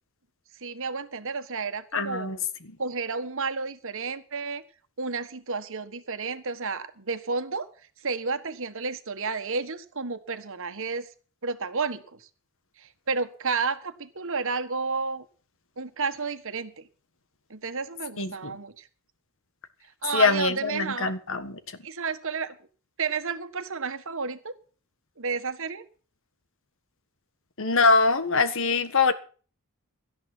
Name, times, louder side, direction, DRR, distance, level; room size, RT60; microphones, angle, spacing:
voice 1, 0.6-2.3 2.8-4.6 5.0-7.7 8.0-11.1 11.4-12.3 12.8-15.2 15.8-16.8 17.5-18.9 20.0-21.1 21.8-22.6 23.0-24.5 25.2-25.8, right 4 dB, 60° right, 1.5 m, -31 dB
voice 2, 1.9-2.4 2.6-2.8 18.2-18.5 20.1-21.6 27.6-29.1, left 4 dB, 60° left, 1.6 m, -23 dB
17.5 x 12.5 x 4.5 m
head